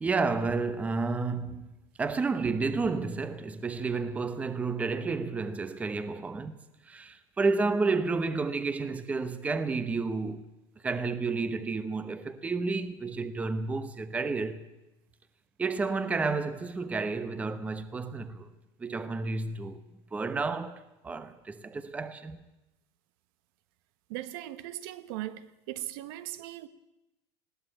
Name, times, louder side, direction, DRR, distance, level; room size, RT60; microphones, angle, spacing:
voice 1, 0.0-1.7 2.0-6.6 6.8-10.5 10.8-14.7 15.6-18.5 18.8-19.8 20.1-22.4, right 4 dB, 10° right, 0.9 m, -31 dB
voice 2, 24.1-26.7, right 14 dB, 65° right, 1.2 m, -39 dB
20.5 x 16.5 x 8.8 m
supercardioid pair, 160°, 13 cm